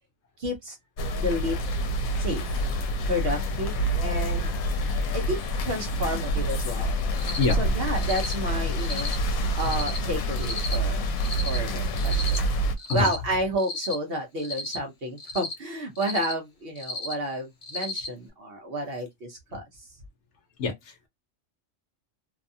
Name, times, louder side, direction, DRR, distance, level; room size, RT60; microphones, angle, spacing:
voice 1, 0.4-0.8 1.1-1.5 2.2-2.4 3.0-3.7 4.0-4.5 5.1-7.0 7.6-9.1 9.6-11.0 11.4-12.4 12.9-19.6, equal, 55° right, 0.8 m, -30 dB
sound 1, 1.0-12.7, equal, 85° left, 1.0 m, -27 dB
voice 2, 4.1-4.7 5.1-5.2 7.4-7.6 12.9-13.1 20.6-21.1, left 4 dB, 60° left, 0.9 m, -28 dB
Cricket, 7.1-7.5 8.0-8.3 8.8-9.1 9.6-10.0 10.4-10.7 11.2-11.6 12.0-12.4 12.8-13.2 13.6-13.9 14.4-14.8 15.2-15.5 15.9-16.3 16.7-17.1 17.6-18.1, left 3 dB, 35° left, 0.7 m, -34 dB
2.7 x 2.3 x 2.6 m
omnidirectional pair, 1.4 m